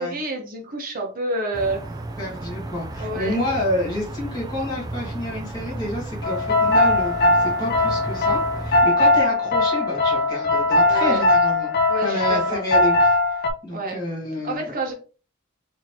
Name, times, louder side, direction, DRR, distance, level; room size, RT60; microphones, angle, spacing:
voice 1, 0.0-1.8 3.0-3.4 10.8-11.3 11.9-12.6 13.7-14.0 14.4-14.9, right 2 dB, 45° right, 2 dB, 1.0 m, -28 dB
sound 1, 1.5-8.8, right 2 dB, 20° right, 0.4 m, -34 dB
voice 2, 2.2-11.7 12.0-14.7, left 1 dB, 20° left, -6 dB, 1.5 m, -29 dB
sound 2, 6.2-13.5, left 2 dB, 50° left, 0.5 m, -20 dB
4.1 x 2.9 x 2.8 m, 0.35 s
head